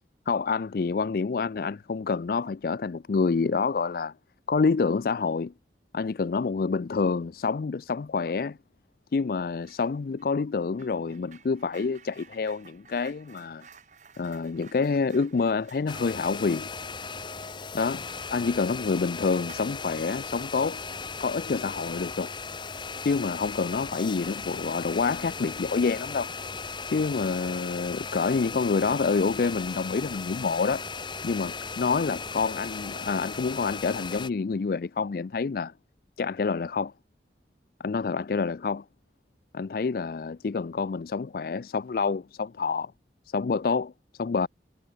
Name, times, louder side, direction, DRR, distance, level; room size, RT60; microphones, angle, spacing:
voice 1, 0.3-4.1 4.5-5.5 5.9-8.6 9.1-13.6 14.2-16.7 17.7-20.8 21.2-22.3 23.0-26.3 26.9-30.8 31.2-35.7 36.2-36.9 37.8-38.8 39.5-42.9 43.3-44.5, left 4 dB, 55° left, 0.4 m, -27 dB
sound 1, 9.6-9.9 10.2-18.4 18.7-18.9 19.4-20.2, right 6 dB, 45° right, 3.0 m, -54 dB
sound 2, 15.9-34.3, left 5 dB, 25° left, 1.4 m, -37 dB
head